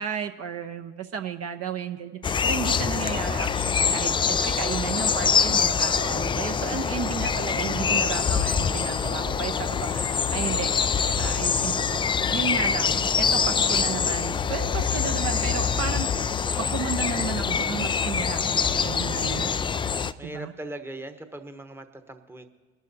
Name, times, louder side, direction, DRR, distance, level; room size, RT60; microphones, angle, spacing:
voice 1, 0.0-10.7 11.2-12.0 12.3-16.3 16.6-19.5 20.2-20.5, right 7 dB, 45° right, 6 dB, 0.8 m, -33 dB
sound 1, 2.2-20.1, left 6 dB, 15° left, 0.3 m, -25 dB
voice 2, 20.2-22.5, right 1 dB, 5° right, 7 dB, 1.0 m, -39 dB
22.0 x 12.0 x 2.7 m, 1.4 s
hypercardioid pair, 70°, 34 cm